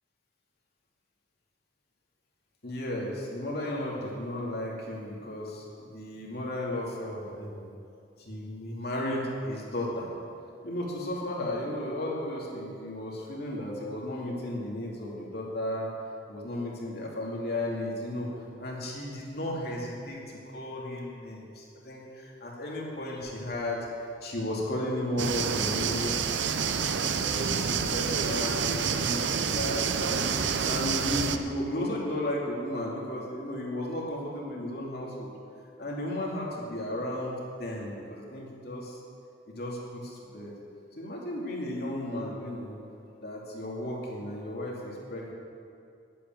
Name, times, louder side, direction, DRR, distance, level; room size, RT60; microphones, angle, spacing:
voice 1, 2.6-7.7 8.2-10.1 10.6-15.9 16.3-18.3 18.6-20.2 20.5-26.6 27.0-30.3 30.6-35.3 35.8-37.3 37.6-39.0 39.5-40.5 40.9-42.8 43.2-45.3, left 1 dB, 55° left, -3 dB, 2.6 m, -34 dB
sound 1, 25.2-31.4, right 6 dB, 75° right, 0.6 m, -28 dB
11.5 x 8.5 x 7.6 m, 2.5 s
head